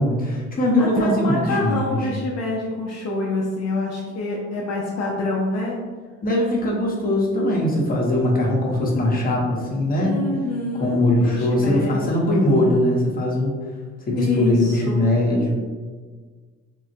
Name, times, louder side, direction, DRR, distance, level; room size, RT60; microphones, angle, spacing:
voice 1, 0.0-2.0 6.2-10.1 10.7-13.5 14.1-15.5, left 1 dB, 30° left, -3 dB, 0.9 m, -20 dB
voice 2, 0.8-5.8 10.0-12.1 14.2-15.0, left 2 dB, 60° left, -3 dB, 0.5 m, -26 dB
3.7 x 2.0 x 2.7 m, 1.5 s
cardioid pair, 90°, 30 cm